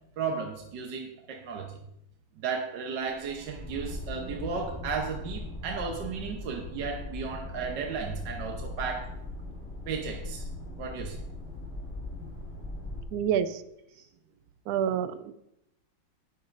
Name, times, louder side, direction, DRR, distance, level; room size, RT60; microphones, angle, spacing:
voice 1, 0.2-1.7 2.4-9.1 9.9-10.4 10.8-11.2 13.9-14.0, right 5 dB, 60° right, 1 dB, 1.5 m, -34 dB
sound 1, 3.1-13.0, left 1 dB, 5° left, 1.7 m, -39 dB
voice 2, 13.1-13.6 14.7-15.3, right 9 dB, 90° right, 12 dB, 0.8 m, -28 dB
18.5 x 7.1 x 2.6 m, 0.82 s
omnidirectional pair, 2.3 m